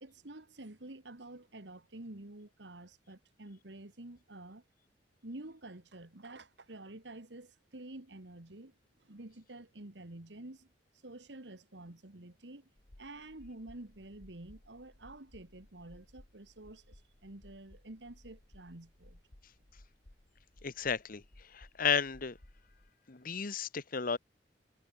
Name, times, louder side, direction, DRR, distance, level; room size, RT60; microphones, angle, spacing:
voice 1, 0.0-4.6 5.2-8.7 9.0-10.7 11.0-12.7 13.0-19.2, right 2 dB, 75° right, 2.0 m, -49 dB
sound 1, 12.8-22.9, left 1 dB, 85° left, 2.3 m, -60 dB
voice 2, 20.6-21.2 21.5-22.4 23.1-24.2, left 6 dB, 50° left, 1.1 m, -33 dB
head